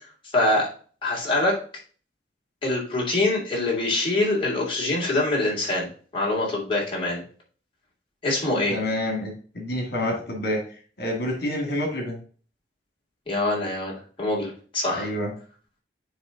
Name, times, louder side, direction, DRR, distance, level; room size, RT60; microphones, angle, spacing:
voice 1, 0.3-0.7 1.0-1.6 2.6-5.9 6.1-7.2 8.2-8.8 13.3-15.1, left 2 dB, 30° left, -4 dB, 2.9 m, -24 dB
voice 2, 8.7-10.6 11.0-12.2 14.9-15.3, left 1 dB, 65° left, 1 dB, 2.2 m, -28 dB
9.6 x 3.2 x 3.9 m, 0.41 s
head